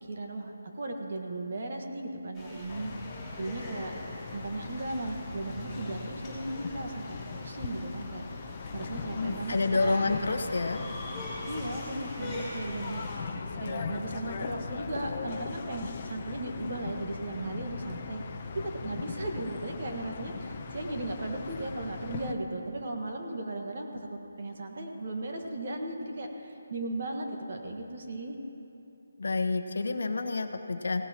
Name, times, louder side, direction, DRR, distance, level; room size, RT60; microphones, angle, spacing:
voice 1, 0.0-2.9 3.4-3.9 4.3-9.6 9.9-10.2 11.4-18.2 18.5-28.4, right 2 dB, 45° right, 2 dB, 1.5 m, -36 dB
sound 1, 2.3-13.2, left 1 dB, ahead, 3.2 m, -43 dB
sound 2, 2.7-22.3, left 5 dB, 30° left, 0.7 m, -39 dB
voice 2, 9.2-10.8 29.2-31.0, left 3 dB, 60° left, 7 dB, 1.0 m, -29 dB
17.5 x 17.0 x 2.9 m, 2.9 s
hypercardioid pair, 170°, 0 cm